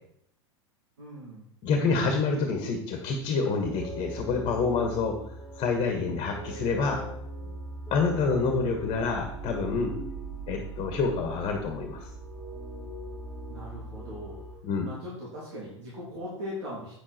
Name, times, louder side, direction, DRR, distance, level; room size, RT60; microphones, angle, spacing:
voice 1, 1.0-1.5 8.3-8.7 13.5-14.4 14.8-17.0, equal, 65° right, -6 dB, 3.5 m, -40 dB
voice 2, 1.6-5.2 5.6-7.0 7.9-9.9 10.5-12.1 14.6-14.8, left 4 dB, 35° left, 4 dB, 1.8 m, -27 dB
sound 1, 3.6-14.6, right 2 dB, ahead, 3.1 m, -40 dB
8.8 x 7.6 x 4.5 m, 0.71 s
hypercardioid pair, 95°, 15 cm